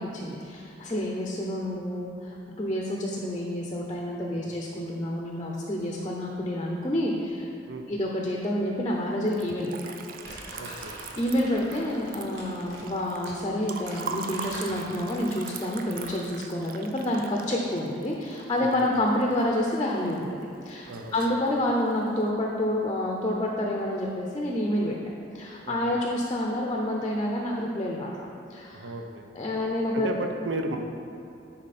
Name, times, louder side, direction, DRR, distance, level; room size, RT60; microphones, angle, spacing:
voice 1, 0.0-7.5 7.9-9.8 10.3-10.8 11.2-20.3 20.6-25.0 25.3-28.1 28.5-28.8 29.3-30.2, left 1 dB, 25° left, -1 dB, 0.6 m, -28 dB
Liquid, 9.2-19.4 19.8-20.4 20.7-21.5, right 6 dB, 45° right, 0.4 m, -41 dB
Crumpling crinkling, 10.2-16.3, equal, 65° right, 1.7 m, -44 dB
voice 2, 10.6-10.9 18.6-18.9 20.9-21.1 25.6-25.9 28.7-29.3 29.9-30.8, right 2 dB, 80° right, 4 dB, 0.7 m, -34 dB
9.9 x 4.4 x 4.2 m, 2.7 s
head